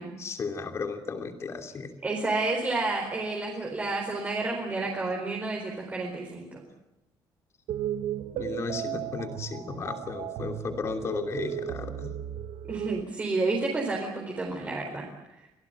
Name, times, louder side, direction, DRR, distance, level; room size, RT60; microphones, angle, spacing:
voice 1, 0.2-1.9 8.3-12.1, left 4 dB, 35° left, 5 dB, 2.9 m, -34 dB
voice 2, 2.0-6.6 12.7-15.1, right 3 dB, 20° right, -1 dB, 4.3 m, -30 dB
sound 1, 7.7-13.0, right 11 dB, 75° right, 1.0 m, -35 dB
25.5 x 18.5 x 9.2 m, 0.95 s
cardioid pair, 165°, 9 cm